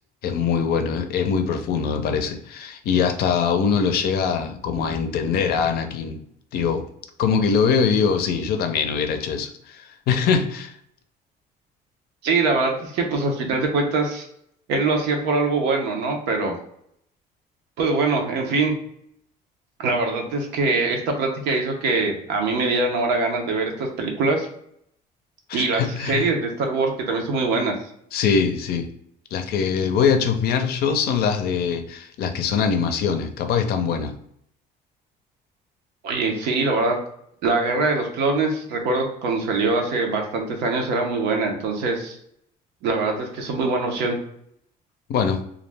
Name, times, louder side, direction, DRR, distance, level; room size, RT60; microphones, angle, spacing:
voice 1, 0.2-6.2 6.5-6.9 7.2-10.7 25.5-26.3 28.1-28.9 29.3-34.1 45.1-45.4, left 6 dB, 65° left, 7 dB, 0.4 m, -22 dB
voice 2, 12.2-14.3 14.7-16.6 17.8-18.7 19.8-24.5 25.5-27.7 36.0-37.0 37.4-42.2 42.8-44.2, right 3 dB, 90° right, 2 dB, 0.7 m, -23 dB
2.4 x 2.1 x 3.2 m, 0.72 s
cardioid pair, 110°, 17 cm